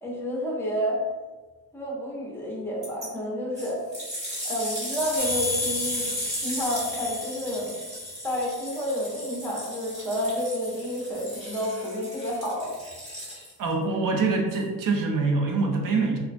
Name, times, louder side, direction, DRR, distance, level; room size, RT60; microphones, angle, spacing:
voice 1, 0.0-1.0 1.7-3.8 4.4-7.7 8.2-12.7, equal, 5° left, -4 dB, 0.4 m, -30 dB
sound 1, 2.8-3.1 3.5-13.7 14.5-14.6, equal, 20° right, 0.8 m, -36 dB
sound 2, 5.2-8.7, left 3 dB, 85° right, 1.4 m, -33 dB
voice 2, 13.6-16.2, right 3 dB, 60° right, 2 dB, 0.5 m, -24 dB
2.4 x 2.1 x 2.4 m, 1.3 s
cardioid pair, 155°, 37 cm